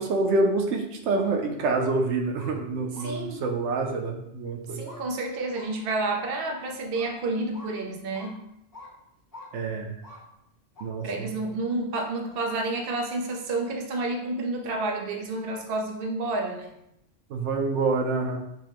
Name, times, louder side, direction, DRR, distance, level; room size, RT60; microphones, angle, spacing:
voice 1, 0.0-4.9 9.5-9.9 10.8-11.3 17.3-18.4, right 3 dB, 90° right, 3 dB, 0.9 m, -27 dB
sound 1, 1.2-1.4 1.8-1.9 2.3-2.5 2.9-3.1 3.7-3.8 4.8-5.0 5.5-5.7 6.1-6.3 6.9-7.1 7.5-7.7 8.1-8.3 8.7-8.9 9.3-9.5 10.0-10.2 10.7-10.8, left 2 dB, 20° left, 0.8 m, -46 dB
voice 2, 3.0-3.4 4.7-8.4 11.0-16.8, right 2 dB, 60° right, 2 dB, 0.8 m, -30 dB
5.8 x 2.1 x 3.0 m, 0.80 s
omnidirectional pair, 1.1 m